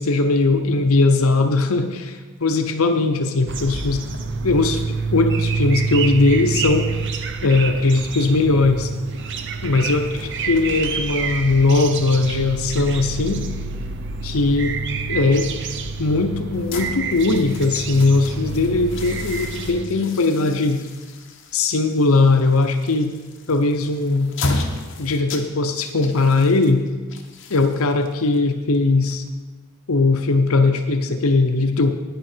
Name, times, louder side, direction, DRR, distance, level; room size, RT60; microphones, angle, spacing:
voice 1, 0.0-4.0 4.4-4.8 5.1-6.9 7.4-8.9 9.6-13.5 14.2-14.8 15.1-15.5 16.0-20.8 21.5-23.1 23.5-24.3 25.0-26.8 27.5-29.2 29.9-31.9, left 3 dB, 75° left, 6 dB, 0.7 m, -19 dB
sound 1, 3.5-19.9, right 4 dB, 55° right, 0.7 m, -27 dB
sound 2, 16.5-29.6, left 2 dB, 55° left, 1.1 m, -34 dB
10.5 x 9.3 x 4.4 m, 1.3 s
head